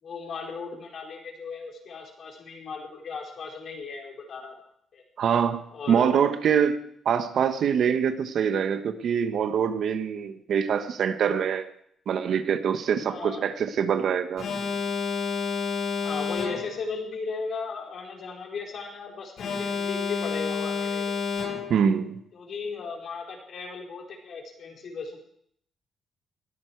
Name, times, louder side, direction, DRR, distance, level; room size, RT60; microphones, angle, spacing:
voice 1, 0.0-4.5 4.9-5.0 5.7-6.3 13.1-13.4 16.0-21.0 22.3-25.2, left 4 dB, 60° left, 0 dB, 4.8 m, -36 dB
voice 2, 5.2-11.7 12.1-14.5 21.7-22.2, right 7 dB, 65° right, 9 dB, 1.3 m, -24 dB
Alarm, 14.4-16.9 19.4-21.9, left 5 dB, 75° left, 4.8 m, -30 dB
20.5 x 13.0 x 4.7 m, 0.68 s
cardioid pair, 100°, 0 cm